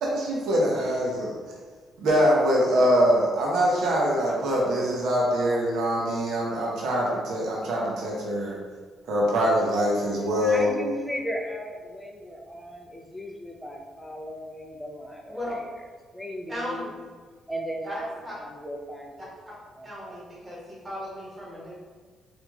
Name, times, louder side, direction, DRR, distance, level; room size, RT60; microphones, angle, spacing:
voice 1, 0.0-1.3 2.0-8.6 9.1-10.7, equal, 75° right, -3 dB, 0.6 m, -23 dB
voice 2, 10.2-15.7 16.1-16.9 17.5-18.0 18.3-19.3 19.8-20.2, equal, 5° left, 1 dB, 0.4 m, -37 dB
voice 3, 16.5-16.9 17.8-18.4 19.2-19.6 19.8-21.8, equal, 25° right, -6 dB, 1.2 m, -36 dB
3.1 x 2.4 x 2.3 m, 1.5 s
cardioid pair, 90°, 0 cm